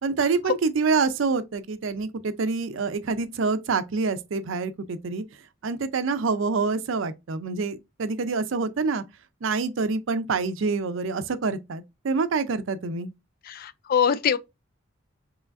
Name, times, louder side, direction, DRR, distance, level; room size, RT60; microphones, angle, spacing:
voice 1, 0.0-5.2 5.6-9.0 9.4-13.1, right 4 dB, 70° right, 0.5 m, -26 dB
voice 2, 13.5-14.4, left 7 dB, 45° left, 0.3 m, -23 dB
4.8 x 3.1 x 2.5 m
head